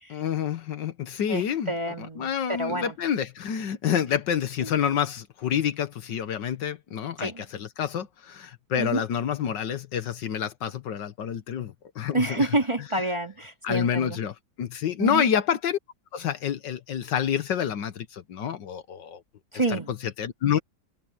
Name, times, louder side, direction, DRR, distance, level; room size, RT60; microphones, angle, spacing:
voice 1, 0.1-12.6 13.6-15.8 16.1-19.2 19.7-20.6, left 8 dB, 70° left, 1.7 m, -28 dB
voice 2, 1.3-3.0 7.2-7.4 8.8-9.0 12.1-14.2 15.0-15.3 19.5-19.9, right 2 dB, 15° right, 2.2 m, -28 dB
omnidirectional pair, 2.0 m